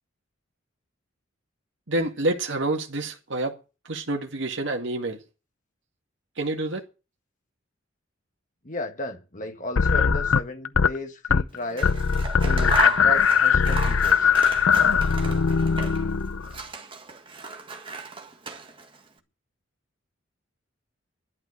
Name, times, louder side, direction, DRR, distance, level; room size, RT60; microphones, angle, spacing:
voice 1, 1.9-3.6 3.9-5.2 6.4-6.8, right 2 dB, 65° right, 2.0 m, -28 dB
voice 2, 8.6-12.0 12.4-14.3, left 1 dB, 40° left, 1.8 m, -34 dB
sound 1, 9.8-11.0 11.2-11.6 11.8-16.6, left 6 dB, 80° left, 0.7 m, -20 dB
Scissors, 11.6-16.1 16.4-19.0, right 4 dB, 25° right, 1.7 m, -35 dB
12.0 x 11.5 x 6.6 m
head